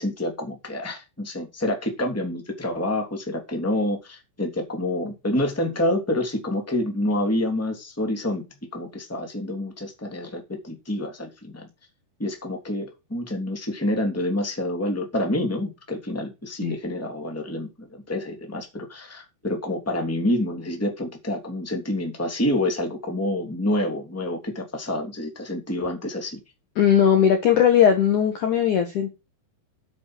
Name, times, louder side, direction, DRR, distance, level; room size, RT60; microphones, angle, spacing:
voice 1, 0.0-11.7 12.2-26.4, left 1 dB, 5° left, 2.2 m, -28 dB
voice 2, 26.8-29.1, left 8 dB, 60° left, 2.2 m, -18 dB
8.4 x 8.2 x 6.2 m
omnidirectional pair, 5.1 m